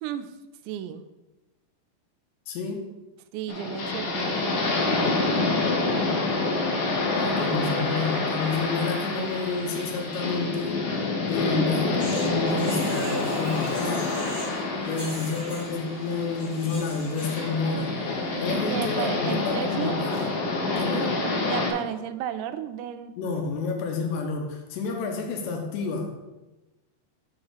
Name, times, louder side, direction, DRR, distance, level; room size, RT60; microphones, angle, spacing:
voice 1, 0.0-0.3 0.7-1.0 3.3-5.6 11.6-11.7 18.5-20.0 21.5-23.3, right 10 dB, 85° right, 10 dB, 2.8 m, -33 dB
voice 2, 2.5-2.9 7.1-10.9 11.3-14.2 14.9-17.9 18.4-20.3 20.8-21.2 23.2-26.1, left 4 dB, 85° left, 2 dB, 3.1 m, -29 dB
sound 1, 3.5-21.7, left 3 dB, 65° left, 2.7 m, -27 dB
sound 2, 12.0-14.6 14.8-17.4, right 1 dB, 15° left, 1.0 m, -41 dB
6.8 x 4.1 x 6.6 m, 1.1 s
omnidirectional pair, 5.0 m